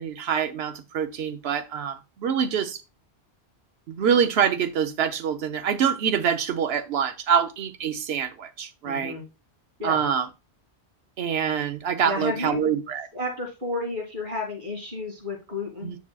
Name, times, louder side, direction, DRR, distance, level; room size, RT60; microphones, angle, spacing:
voice 1, 0.0-2.8 3.9-9.2 9.8-10.3 11.2-13.1 15.8-16.0, right 7 dB, 75° right, 1.0 m, -25 dB
voice 2, 8.8-9.2 9.8-10.0 12.0-12.6 13.1-15.9, left 2 dB, 50° right, 2.8 m, -31 dB
9.3 x 5.9 x 2.3 m
omnidirectional pair, 1.1 m